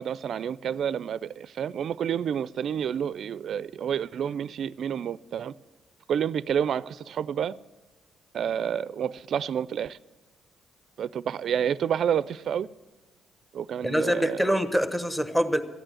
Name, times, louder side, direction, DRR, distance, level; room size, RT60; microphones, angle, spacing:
voice 1, 0.0-5.5 6.1-7.5 8.3-10.0 11.0-12.7 13.5-14.5, right 8 dB, 65° right, 0.3 m, -29 dB
voice 2, 13.8-15.6, equal, 5° left, 1.0 m, -24 dB
14.0 x 9.0 x 7.7 m
cardioid pair, 90°, 0 cm